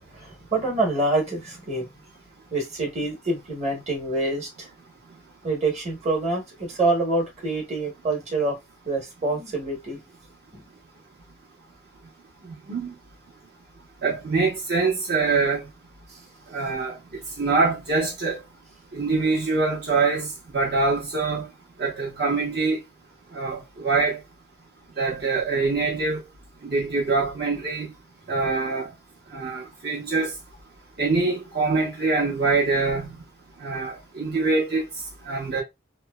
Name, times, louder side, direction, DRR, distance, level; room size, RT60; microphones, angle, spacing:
voice 1, 0.0-1.9 2.5-4.7 5.4-8.6 8.8-10.0 10.5-10.6, right 2 dB, 35° right, 1.1 m, -26 dB
voice 2, 14.0-15.6 16.5-17.0 17.4-18.4 18.9-21.5 21.8-22.8 23.3-24.2 25.0-26.2 26.6-27.9 28.3-28.9 29.3-30.3 31.0-33.1 33.6-34.8 35.3-35.6, right 3 dB, 55° right, 0.9 m, -24 dB
2.9 x 2.2 x 2.2 m
head